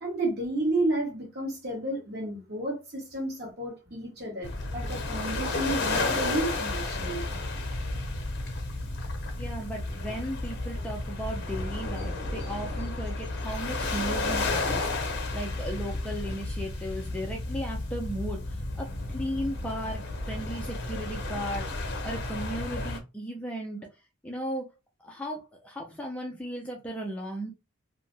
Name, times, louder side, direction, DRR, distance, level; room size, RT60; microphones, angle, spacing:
voice 1, 0.0-7.2, right 1 dB, 50° right, 1.3 m, -31 dB
sound 1, 4.4-23.0, left 2 dB, 50° left, 0.7 m, -32 dB
voice 2, 9.4-23.9 24.2-24.7 25.0-27.5, equal, 5° left, 0.4 m, -36 dB
2.6 x 2.1 x 3.2 m
head